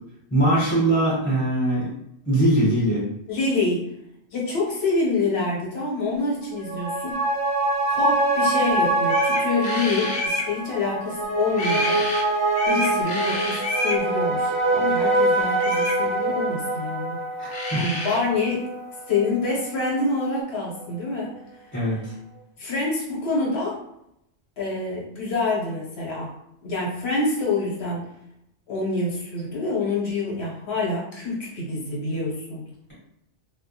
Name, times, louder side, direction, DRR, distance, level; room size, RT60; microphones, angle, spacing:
voice 1, 0.3-1.9 2.3-3.0 17.4-17.8 21.7-22.1, right 1 dB, 10° left, -9 dB, 0.8 m, -21 dB
voice 2, 3.3-3.8 4.3-7.1 7.9-12.0 12.6-17.2 17.8-18.6 19.1-21.4 22.6-23.8 24.6-26.3 26.6-28.1 28.7-32.7, left 3 dB, 60° left, -5 dB, 1.1 m, -26 dB
sound 1, 6.5-19.4 19.7-19.8, right 2 dB, 15° right, 0.7 m, -24 dB
sound 2, 8.7-8.8 9.0-10.5 11.5-12.2 12.5-14.0 15.6-16.0 17.2-17.3 17.5-18.2, left 1 dB, 80° left, 0.9 m, -28 dB
2.2 x 2.0 x 2.6 m, 0.80 s
omnidirectional pair, 1.2 m